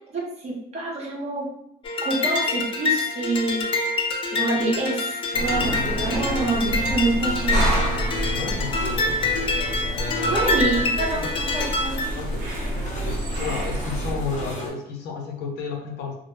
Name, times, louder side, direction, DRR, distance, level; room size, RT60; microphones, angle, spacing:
voice 1, 0.1-1.5 2.0-3.8 4.3-7.6 10.2-12.1, right 2 dB, 40° right, -3 dB, 0.8 m, -27 dB
sound 1, 1.8-12.1, left 3 dB, 30° left, 0.4 m, -26 dB
sound 2, 5.3-14.7, left 1 dB, 50° left, 0.8 m, -38 dB
sound 3, 5.3-14.5, right 1 dB, 90° right, 0.7 m, -28 dB
voice 2, 8.3-9.6 9.9-10.8 11.2-11.3 12.1-12.7 13.0-16.1, left 4 dB, 80° left, 2 dB, 0.5 m, -33 dB
2.0 x 2.0 x 3.0 m, 0.81 s
cardioid pair, 110°, 17 cm